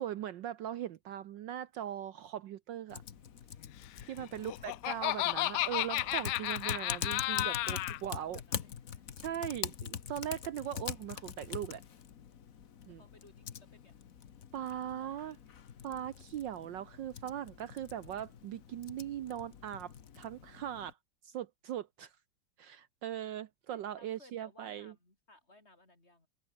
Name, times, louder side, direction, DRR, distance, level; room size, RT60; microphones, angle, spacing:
voice 1, 0.0-3.0 4.0-8.4 9.2-11.8 12.9-13.0 14.5-15.4 15.8-21.0 21.2-22.1 22.6-24.9, right 11 dB, 65° right, 1.4 m, -40 dB
Typing, 2.9-20.9, left 8 dB, 45° left, 1.4 m, -44 dB
Laughter, 4.2-8.0, left 15 dB, 75° left, 1.0 m, -33 dB
voice 2, 4.3-5.1 7.9-9.1 13.0-14.0 14.7-15.4 23.7-26.3, left 2 dB, 30° left, 4.7 m, -62 dB
omnidirectional pair, 2.3 m